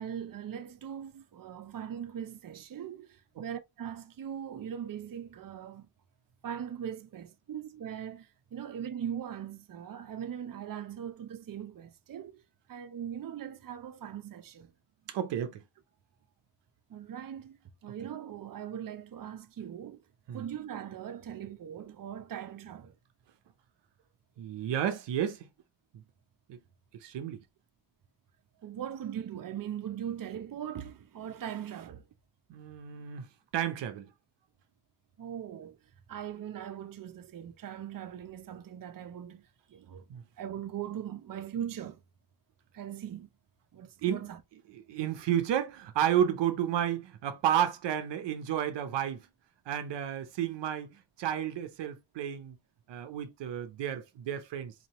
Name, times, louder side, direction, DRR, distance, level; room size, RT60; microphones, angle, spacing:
voice 1, 0.0-3.1 3.4-5.9 6.4-12.3 12.7-14.7 16.9-17.6 17.8-20.0 20.3-22.9 28.6-32.0 35.2-35.8 36.1-39.4 39.7-40.0 40.4-42.0 42.7-43.3 43.7-44.4, right 9 dB, 50° right, 0.7 m, -40 dB
voice 2, 15.1-15.6 20.3-20.5 24.4-25.4 25.9-26.0 26.5-26.6 27.0-27.4 32.5-33.3 33.5-34.1 40.1-40.2 44.0-49.3 49.7-52.6 52.9-54.7, right 10 dB, 90° right, 0.8 m, -32 dB
4.1 x 2.8 x 2.9 m
cardioid pair, 60°, 42 cm